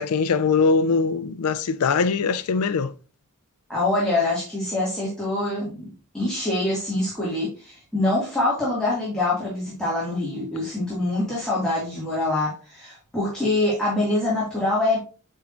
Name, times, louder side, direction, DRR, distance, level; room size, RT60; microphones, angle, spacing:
voice 1, 0.0-2.9, left 4 dB, 75° left, 0.4 m, -22 dB
voice 2, 3.7-15.0, left 2 dB, 5° left, 2.0 m, -25 dB
8.5 x 4.5 x 2.5 m
head